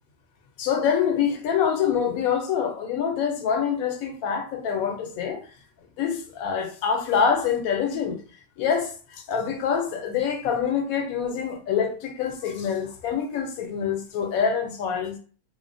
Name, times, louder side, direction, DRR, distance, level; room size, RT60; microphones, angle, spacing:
voice 1, 0.6-5.4 6.0-8.2 8.6-15.2, left 7 dB, 75° left, 1.0 m, -25 dB
2.7 x 2.0 x 2.5 m
omnidirectional pair, 1.5 m